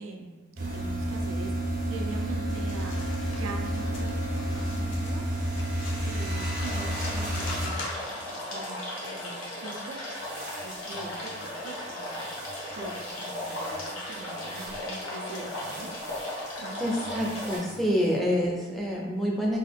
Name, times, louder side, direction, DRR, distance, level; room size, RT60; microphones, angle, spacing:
voice 1, 0.0-1.5 1.9-10.0 10.6-15.9 16.6-16.9, right 3 dB, 85° right, 2 dB, 0.4 m, -42 dB
sound 1, 0.6-7.7 10.2-11.5 12.1-14.0 14.4-14.8 15.3-16.5 16.9-17.9, right 1 dB, 50° right, 0.8 m, -32 dB
sound 2, 2.5-8.4, left 3 dB, 70° left, 0.6 m, -42 dB
sound 3, 6.6-17.6, left 1 dB, 85° left, 1.0 m, -36 dB
voice 2, 16.8-19.6, equal, ahead, -4 dB, 0.4 m, -27 dB
3.0 x 2.3 x 3.3 m, 1.3 s
head